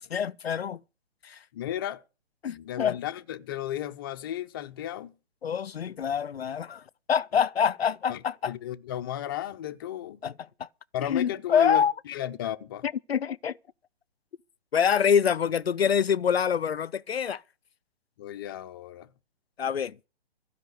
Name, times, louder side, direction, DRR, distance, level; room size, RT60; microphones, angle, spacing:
voice 1, 0.1-0.8 1.2-1.4 2.4-3.0 5.4-8.5 10.2-10.7 11.0-11.9 12.8-13.6 14.7-17.4 19.6-20.0, left 7 dB, 65° left, 0.6 m, -26 dB
voice 2, 1.5-2.0 2.5-5.1 8.1-8.2 8.5-10.2 10.9-12.8 18.2-19.1, left 11 dB, 20° left, 0.6 m, -34 dB
15.5 x 5.7 x 9.3 m
figure-of-eight pair, 135°, 33 cm